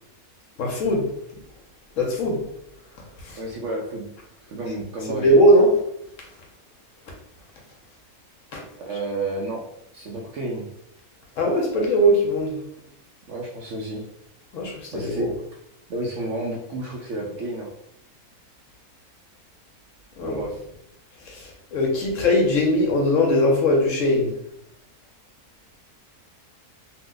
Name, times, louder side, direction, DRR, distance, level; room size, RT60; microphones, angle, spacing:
voice 1, 0.6-1.1 2.0-2.4 3.2-3.4 5.2-5.8 8.5-8.6 11.4-12.6 14.5-15.3 20.2-20.4 21.2-24.3, equal, 65° left, -1 dB, 1.0 m, -20 dB
voice 2, 3.4-4.1 4.5-5.2 8.8-10.7 13.3-14.1 14.9-15.3 15.9-17.7 20.2-20.6, right 2 dB, 65° right, -2 dB, 0.8 m, -31 dB
2.8 x 2.1 x 3.7 m, 0.76 s
omnidirectional pair, 1.6 m